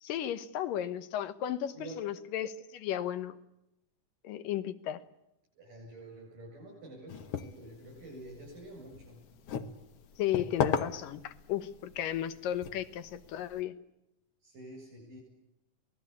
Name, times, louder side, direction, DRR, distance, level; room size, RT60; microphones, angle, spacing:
voice 1, 0.0-3.3 4.2-5.0 10.2-13.8, left 11 dB, 90° left, 12 dB, 2.8 m, -34 dB
voice 2, 5.6-9.3 14.4-15.2, right 1 dB, 85° right, -2 dB, 9.7 m, -48 dB
sound 1, 7.1-13.6, left 7 dB, 55° left, 1.9 m, -38 dB
27.0 x 19.0 x 8.5 m, 0.87 s
omnidirectional pair, 3.8 m